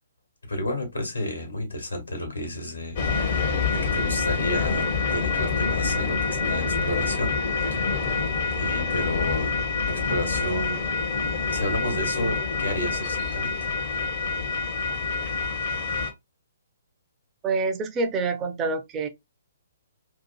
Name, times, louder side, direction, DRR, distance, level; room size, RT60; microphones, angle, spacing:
voice 1, 0.5-7.4 7.7-8.1 8.5-9.5 9.8-10.8 11.5-13.5, left 1 dB, 80° left, 1.1 m, -31 dB
long train close, 3.0-16.1, left 4 dB, 40° left, 0.6 m, -26 dB
voice 2, 17.4-19.1, right 3 dB, 20° right, 0.4 m, -26 dB
2.6 x 2.4 x 2.2 m
figure-of-eight pair, 125°, 0 cm